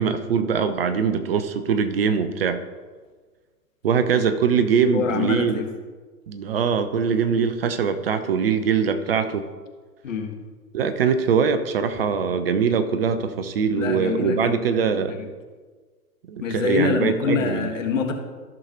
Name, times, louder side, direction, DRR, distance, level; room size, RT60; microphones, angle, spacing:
voice 1, 0.0-2.6 3.8-5.6 6.3-9.5 10.7-15.1 16.3-17.6, right 6 dB, 40° right, 10 dB, 0.6 m, -22 dB
voice 2, 4.9-5.7 7.3-7.5 10.0-10.3 13.7-14.6 14.9-15.3 16.4-18.1, left 6 dB, 55° left, 4 dB, 1.6 m, -26 dB
14.5 x 6.4 x 2.9 m, 1.4 s
figure-of-eight pair, 115°, 47 cm